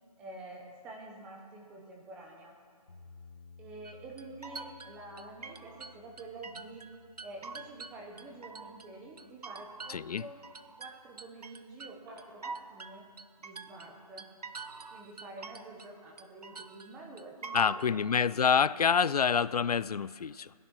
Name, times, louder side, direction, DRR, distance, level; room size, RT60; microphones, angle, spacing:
voice 1, 0.2-2.5 3.6-6.8 7.2-10.4 10.8-13.1 13.4-14.3 14.9-18.4, right 2 dB, 5° right, 0 dB, 0.6 m, -48 dB
sound 1, 2.9-11.0, left 4 dB, 45° left, 2.5 m, -58 dB
sound 2, 3.3-4.3 4.7-4.8 5.4-5.5 6.3-7.0 7.4-7.7 8.7-8.9 9.3-9.4 10.0-10.1 10.3-12.9 13.3-13.6 14.8-15.0 15.4-17.5 18.0-18.3 18.8-18.9, equal, 35° right, 4.5 m, -65 dB
sound 3, 3.8-6.9 7.2-8.9 9.2-15.9 16.2-17.9, right 4 dB, 80° right, 1.0 m, -45 dB
voice 2, 9.9-10.2 17.5-20.5, left 6 dB, 75° left, 19 dB, 0.4 m, -27 dB
17.5 x 11.0 x 6.2 m, 2.2 s
hypercardioid pair, 165°, 20 cm